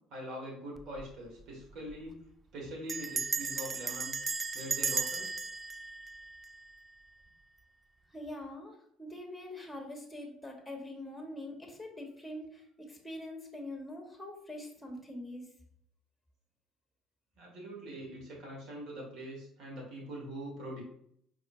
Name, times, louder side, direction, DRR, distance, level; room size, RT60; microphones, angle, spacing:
voice 1, 0.1-2.1 2.5-4.2 4.5-5.3 17.4-20.8, equal, 55° right, -2 dB, 1.8 m, -43 dB
Bell, 0.8-1.1 1.4-1.5 1.7-2.1 2.9-7.0, right 4 dB, 25° right, 0.3 m, -36 dB
voice 2, 8.1-15.5, left 1 dB, 5° left, 1 dB, 1.2 m, -44 dB
5.0 x 3.6 x 2.6 m, 0.68 s
figure-of-eight pair, 55°, 0 cm